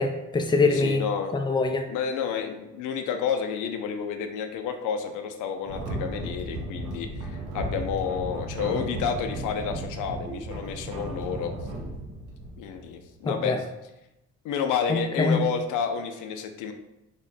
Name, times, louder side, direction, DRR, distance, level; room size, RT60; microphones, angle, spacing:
voice 1, 0.0-1.0 1.3-1.8 10.3-10.4 13.2-13.6 14.9-15.4, left 3 dB, 15° left, 4 dB, 0.4 m, -24 dB
voice 2, 0.7-1.4 1.9-11.5 12.6-13.7 14.4-16.7, left 7 dB, 85° left, 6 dB, 0.5 m, -30 dB
sound 1, 5.7-13.1, right 1 dB, 90° right, 0.9 m, -35 dB
3.6 x 2.2 x 3.9 m, 0.94 s
cardioid pair, 90°, 30 cm